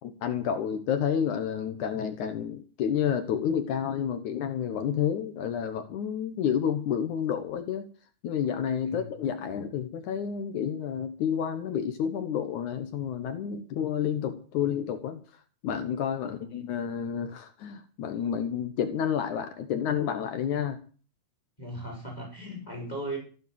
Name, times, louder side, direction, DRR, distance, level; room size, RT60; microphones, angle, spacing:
voice 1, 0.0-7.9 8.2-15.2 15.6-20.8, left 8 dB, 65° left, 8 dB, 2.5 m, -30 dB
voice 2, 16.2-16.6 21.6-23.2, right 1 dB, 10° left, 1 dB, 5.8 m, -38 dB
15.0 x 9.8 x 7.7 m, 0.40 s
omnidirectional pair, 3.9 m